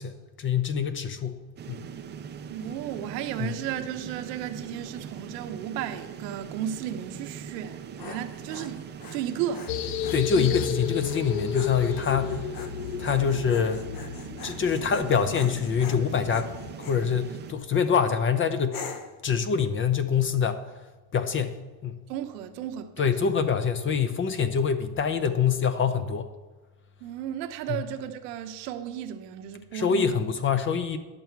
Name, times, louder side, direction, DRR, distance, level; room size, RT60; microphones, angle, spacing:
voice 1, 0.0-1.4 1.7-1.8 3.4-3.5 10.1-12.4 13.0-13.8 14.4-16.5 16.8-18.8 19.2-20.6 21.1-22.0 23.0-26.3 29.7-31.0, left 6 dB, 25° left, 0.6 m, -25 dB
sound 1, 1.6-17.5, right 8 dB, 25° right, 0.4 m, -41 dB
voice 2, 2.5-8.8 9.1-9.7 10.3-10.5 22.1-23.0 27.0-30.1, right 10 dB, 85° right, 1.0 m, -34 dB
Dog, 7.6-17.0 17.6-18.0 18.7-19.2, left 5 dB, 45° left, 1.0 m, -44 dB
sound 2, 9.7-16.7, left 9 dB, 75° left, 0.8 m, -34 dB
11.0 x 7.1 x 4.5 m
supercardioid pair, 125°, 47 cm